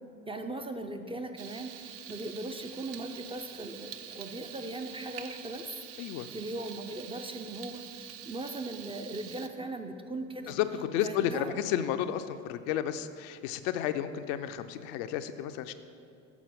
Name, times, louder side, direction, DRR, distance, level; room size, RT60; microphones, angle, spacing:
voice 1, 0.3-10.6 11.0-11.5, right 2 dB, 15° right, 5 dB, 0.4 m, -39 dB
Frying (food), 1.4-9.5, right 9 dB, 55° right, 0.6 m, -46 dB
voice 2, 6.0-6.3 10.5-10.7 10.9-15.7, left 10 dB, 70° left, 9 dB, 0.5 m, -32 dB
7.1 x 4.4 x 5.8 m, 2.5 s
hypercardioid pair, 65°, 41 cm